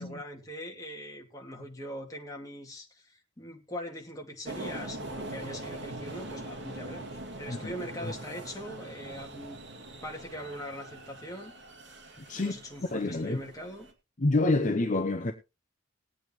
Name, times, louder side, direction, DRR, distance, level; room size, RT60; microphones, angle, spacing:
voice 1, 0.0-9.6 10.0-11.5 12.3-13.9, equal, 20° left, 2.4 m, -42 dB
sound 1, 4.4-13.9, right 2 dB, 65° right, 2.3 m, -42 dB
voice 2, 12.9-13.4 14.2-15.3, left 2 dB, 40° left, 0.8 m, -27 dB
20.0 x 8.6 x 3.1 m
head